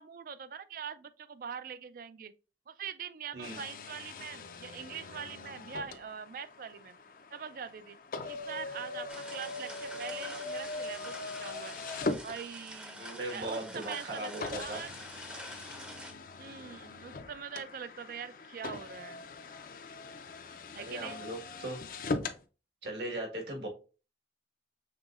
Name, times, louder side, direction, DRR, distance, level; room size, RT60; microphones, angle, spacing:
voice 1, 0.0-2.3 2.7-7.0 7.3-8.0 8.3-11.8 12.2-14.9 16.4-19.2 20.7-21.2, right 7 dB, 50° right, 0.3 m, -43 dB
sound 1, 3.4-12.9 13.6-13.7 14.4-22.4, left 3 dB, 50° left, 0.5 m, -41 dB
sound 2, 9.1-16.1, equal, 5° right, 0.6 m, -47 dB
voice 2, 13.0-14.8 20.8-21.8 22.8-23.7, right 1 dB, 75° right, 1.4 m, -38 dB
5.5 x 3.9 x 2.4 m
head